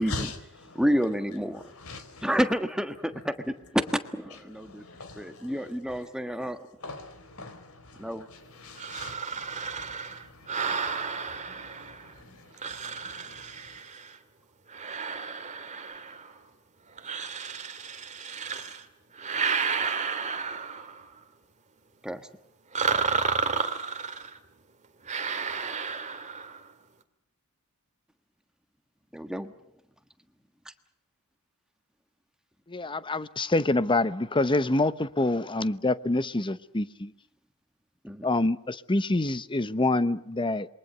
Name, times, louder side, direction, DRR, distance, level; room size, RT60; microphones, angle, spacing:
voice 1, 0.0-0.8 1.6-2.3 4.6-6.4 6.8-13.8, left 2 dB, 70° left, 4.2 m, -44 dB
voice 2, 0.7-1.6 2.2-3.8 4.1-4.8 5.1-6.7 8.0-8.3 22.0-22.3 29.1-29.5 38.0-38.3, equal, 5° right, 1.5 m, -29 dB
sound 1, 8.8-12.1 12.6-14.2 14.7-16.4 17.0-18.8 19.2-21.1 22.7-24.4 25.1-26.6, right 5 dB, 35° right, 2.1 m, -32 dB
voice 3, 32.7-37.1 38.2-40.7, left 2 dB, 20° left, 0.9 m, -26 dB
27.5 x 23.5 x 6.8 m
head